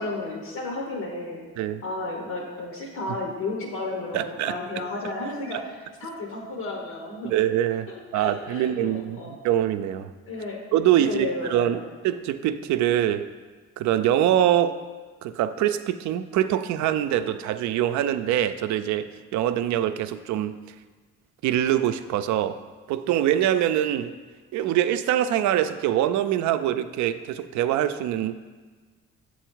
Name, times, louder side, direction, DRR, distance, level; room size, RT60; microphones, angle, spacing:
voice 1, 0.0-1.5 1.8-7.3 7.9-9.3 10.3-10.6 11.0-11.9, left 2 dB, 80° left, 0 dB, 1.1 m, -33 dB
voice 2, 4.1-4.6 7.2-10.1 10.7-13.3 13.8-14.8 15.2-20.6 21.4-22.6 22.9-24.1 24.5-28.3, right 11 dB, 75° right, 11 dB, 0.4 m, -24 dB
7.0 x 4.1 x 4.6 m, 1.4 s
supercardioid pair, 75°, 29 cm